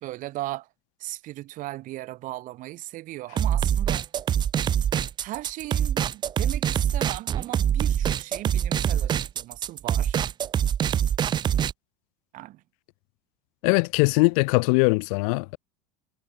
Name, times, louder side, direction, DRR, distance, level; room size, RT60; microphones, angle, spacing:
voice 1, 0.0-0.7 1.0-4.1 5.2-10.2 12.3-12.6, right 17 dB, 45° right, 1.5 m, -37 dB
sound 1, 3.4-11.7, right 9 dB, 25° right, 0.6 m, -24 dB
voice 2, 13.6-15.6, left 31 dB, 65° left, 1.1 m, -21 dB
supercardioid pair, 140°, 19 cm